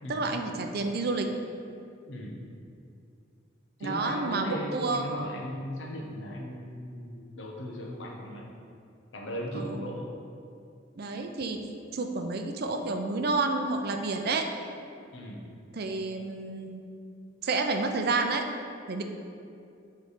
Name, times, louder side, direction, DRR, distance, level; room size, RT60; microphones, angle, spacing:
voice 1, 0.1-1.3 3.8-5.1 9.5-9.9 11.0-11.6 11.9-14.5 15.7-16.8 17.4-18.4 18.9-19.0, right 3 dB, 55° right, 5 dB, 0.5 m, -30 dB
voice 2, 2.1-2.4 3.8-8.5 9.1-10.1 15.1-15.5, equal, 85° left, -1 dB, 0.9 m, -37 dB
6.7 x 3.3 x 4.9 m, 2.5 s
head